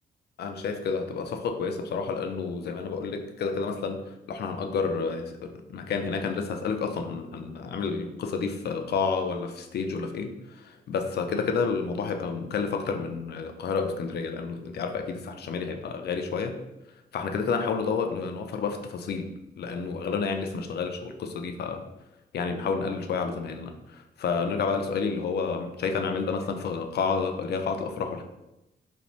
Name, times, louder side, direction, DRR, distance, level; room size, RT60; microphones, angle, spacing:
voice 1, 0.4-4.0 4.3-16.6 17.1-19.3 19.6-21.8 22.3-28.2, left 5 dB, 60° left, 6 dB, 0.4 m, -30 dB
2.5 x 2.1 x 3.0 m, 0.93 s
cardioid pair, 60°, 19 cm